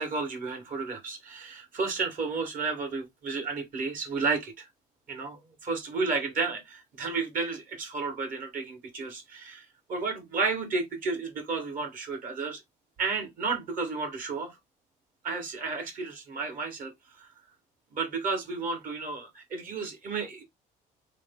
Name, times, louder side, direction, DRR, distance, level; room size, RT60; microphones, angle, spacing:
voice 1, 0.0-4.7 5.1-9.6 9.9-12.6 13.0-14.5 15.2-16.9 17.2-17.3 17.9-20.4, right 4 dB, 55° right, 1.4 m, -32 dB
3.1 x 2.2 x 3.6 m
cardioid pair, 110°, 17 cm